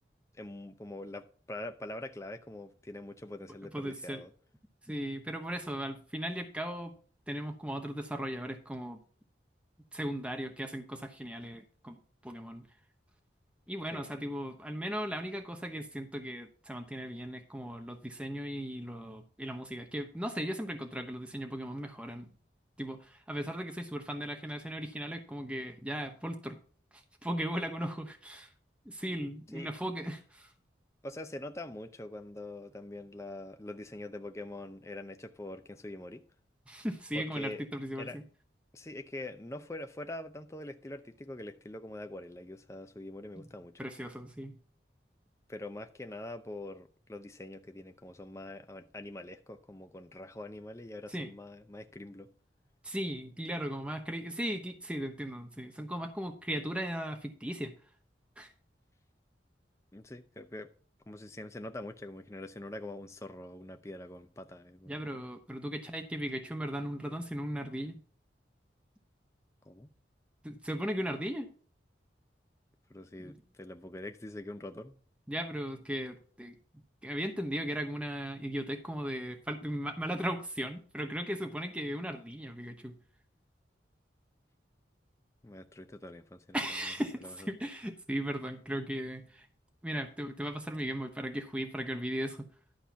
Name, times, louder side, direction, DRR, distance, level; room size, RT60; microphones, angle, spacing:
voice 1, 0.3-4.3 13.9-14.1 29.5-29.7 31.0-36.2 37.1-37.6 38.0-38.2 38.7-43.7 45.5-52.3 59.9-60.7 61.1-65.1 69.6-69.9 72.9-75.0 85.4-86.9 87.2-87.5, left 1 dB, 15° left, 0.6 m, -44 dB
voice 2, 3.7-4.2 4.9-6.9 7.3-9.0 9.9-12.0 12.2-12.6 13.7-22.3 22.8-26.6 27.2-28.5 28.9-30.5 36.7-38.2 43.4-43.5 43.8-44.5 51.1-51.3 52.8-57.7 58.4-58.5 64.9-68.0 70.4-71.5 73.2-73.4 75.3-76.5 77.0-82.9 86.5-89.4 89.8-92.5, equal, 5° right, 0.9 m, -37 dB
11.5 x 4.4 x 5.7 m
head